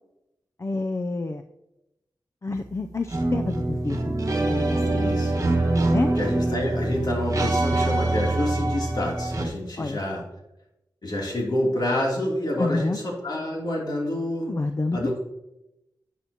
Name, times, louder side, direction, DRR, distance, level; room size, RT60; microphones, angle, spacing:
voice 1, 0.6-1.4 2.4-5.0 5.9-6.1 7.7-7.8 9.8-10.0 12.6-13.0 14.5-15.2, left 3 dB, 40° left, 7 dB, 0.5 m, -29 dB
sound 1, 3.1-9.5, right 2 dB, 45° right, 1.5 m, -24 dB
voice 2, 4.9-5.3 6.2-10.2 11.0-14.5 14.9-15.2, left 1 dB, 60° left, -2 dB, 3.0 m, -28 dB
11.5 x 8.3 x 2.9 m, 0.90 s
wide cardioid pair, 75°, 8 cm